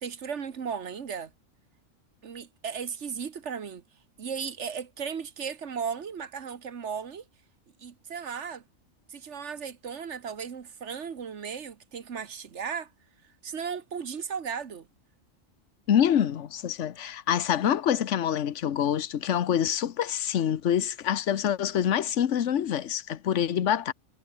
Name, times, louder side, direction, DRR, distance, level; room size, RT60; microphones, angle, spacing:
voice 1, 0.0-1.3 2.2-3.8 4.2-7.2 7.8-8.6 9.1-12.9 13.4-14.9, right 6 dB, 60° right, 1.5 m, -36 dB
voice 2, 15.9-23.9, left 9 dB, 65° left, 1.2 m, -26 dB
omnidirectional pair, 1.4 m